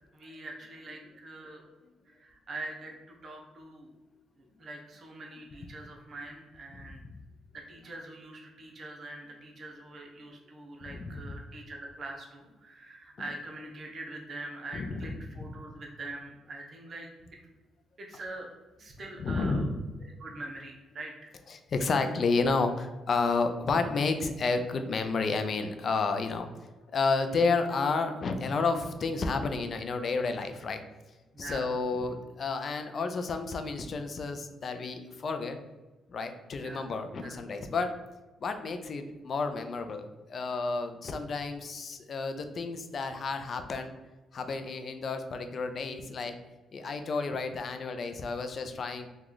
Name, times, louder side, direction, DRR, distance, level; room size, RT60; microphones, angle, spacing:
voice 1, 0.1-1.6 2.1-3.9 4.6-7.0 7.5-17.1 18.0-18.5 18.8-19.6 20.2-21.3 31.3-31.7 36.6-36.9 37.2-37.4, right 2 dB, 45° right, 0 dB, 0.8 m, -43 dB
voice 2, 6.8-7.1 10.9-11.4 14.7-15.1 15.4-15.5 19.2-19.9 21.5-26.5 26.9-30.8 31.4-35.6 36.1-37.9 38.4-43.9 44.3-46.4 46.7-49.1, left 4 dB, 50° left, 7 dB, 0.4 m, -31 dB
3.0 x 2.3 x 3.8 m, 1.2 s
cardioid pair, 90°, 0 cm